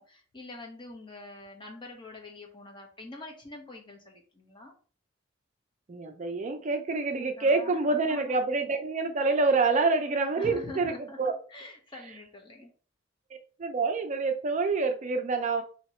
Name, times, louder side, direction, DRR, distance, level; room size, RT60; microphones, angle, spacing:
voice 1, 0.0-4.7 7.4-7.8 8.1-8.4 10.4-12.7, left 2 dB, 25° left, 0.9 m, -45 dB
voice 2, 5.9-10.9 11.2-11.4 13.6-15.6, right 3 dB, 40° right, 0.4 m, -27 dB
2.9 x 2.8 x 4.2 m
head